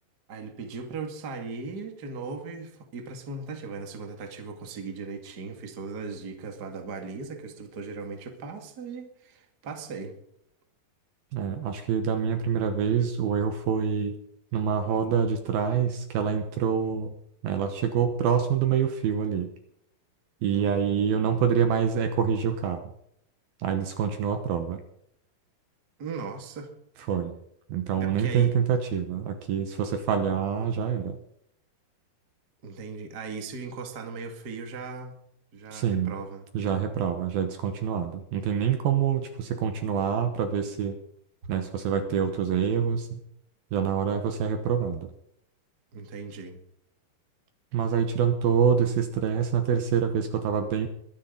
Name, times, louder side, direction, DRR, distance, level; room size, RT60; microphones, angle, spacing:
voice 1, 0.3-10.2 20.5-21.1 26.0-26.7 28.0-28.5 32.6-35.1 35.5-36.4 45.9-46.6, right 4 dB, 35° right, 4 dB, 1.9 m, -38 dB
voice 2, 11.3-14.1 14.5-17.1 17.4-19.5 20.4-22.8 23.6-24.8 27.1-27.3 27.7-31.2 35.7-36.1 36.5-41.0 41.5-43.2 43.7-45.1 47.7-50.9, right 7 dB, 70° right, 7 dB, 2.7 m, -26 dB
23.0 x 10.5 x 4.0 m, 0.74 s
omnidirectional pair, 4.9 m